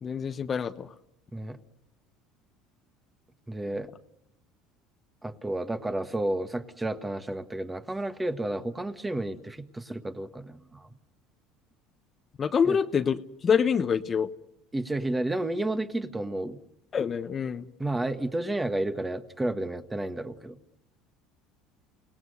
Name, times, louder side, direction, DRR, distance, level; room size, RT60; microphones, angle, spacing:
voice 1, 0.0-0.9 12.4-14.3 16.9-17.7, left 7 dB, 35° left, 10 dB, 1.0 m, -26 dB
voice 2, 3.5-3.9 5.2-10.9 12.6-12.8 14.7-16.6 17.8-20.6, right 1 dB, 10° right, 9 dB, 1.5 m, -31 dB
28.5 x 18.0 x 6.7 m, 0.77 s
supercardioid pair, 100°, 0 cm